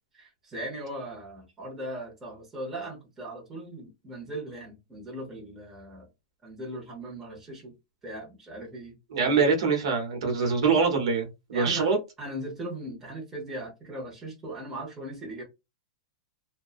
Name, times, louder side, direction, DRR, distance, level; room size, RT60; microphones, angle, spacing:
voice 1, 0.1-6.1 6.4-7.7 8.0-9.5 11.5-11.9 12.2-15.4, right 1 dB, 10° right, 0.8 m, -39 dB
voice 2, 9.1-12.0, right 5 dB, 70° right, 0.9 m, -24 dB
2.5 x 2.2 x 2.3 m
supercardioid pair, 170°, 3 cm